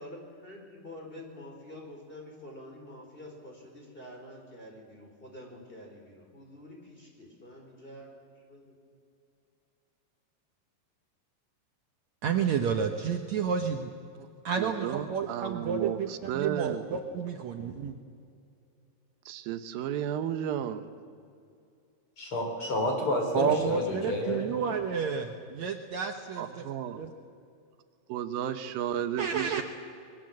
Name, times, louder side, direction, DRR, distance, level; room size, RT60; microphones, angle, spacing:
voice 1, 0.0-8.7 20.6-21.0, left 1 dB, 15° left, 1 dB, 4.4 m, -47 dB
voice 2, 12.2-13.9 14.4-17.9 23.3-26.6 27.0-27.1 29.2-29.6, right 6 dB, 65° right, 4 dB, 2.1 m, -30 dB
voice 3, 14.6-16.8 19.3-20.8 26.4-27.0 28.1-29.6, right 10 dB, 90° right, 9 dB, 2.9 m, -33 dB
voice 4, 22.2-24.5, left 1 dB, 35° left, 2 dB, 4.7 m, -30 dB
26.5 x 22.5 x 7.7 m, 2.5 s
omnidirectional pair, 4.0 m